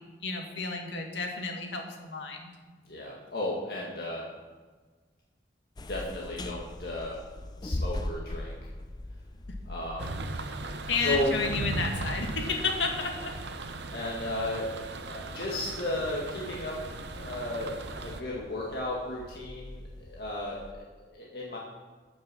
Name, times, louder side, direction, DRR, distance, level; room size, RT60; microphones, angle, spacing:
voice 1, 0.2-2.5 10.9-13.3, left 4 dB, 85° left, 2 dB, 1.9 m, -31 dB
voice 2, 2.9-4.2 5.9-7.2 7.6-8.6 9.6-10.1 11.0-11.4 13.9-16.8 17.1-21.6, left 1 dB, 55° left, -4 dB, 1.9 m, -34 dB
sound 1, 5.8-20.7, left 1 dB, 20° left, 0.4 m, -42 dB
sound 2, 10.0-18.2, right 2 dB, 75° right, 0.8 m, -37 dB
13.0 x 6.5 x 6.2 m, 1.4 s
head